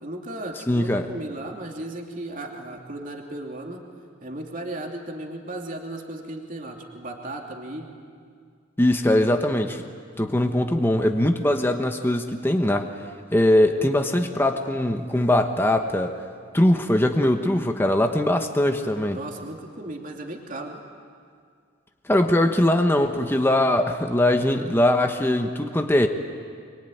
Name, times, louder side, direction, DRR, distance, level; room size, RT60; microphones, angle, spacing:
voice 1, 0.0-3.8 4.2-7.9 13.8-14.0 19.1-20.8, right 1 dB, 45° right, 1 dB, 2.8 m, -35 dB
voice 2, 0.7-1.0 8.8-9.8 10.2-12.9 13.3-16.2 16.5-19.2 22.1-26.1, left 1 dB, 10° left, 4 dB, 1.2 m, -21 dB
25.5 x 23.0 x 9.3 m, 2.1 s
head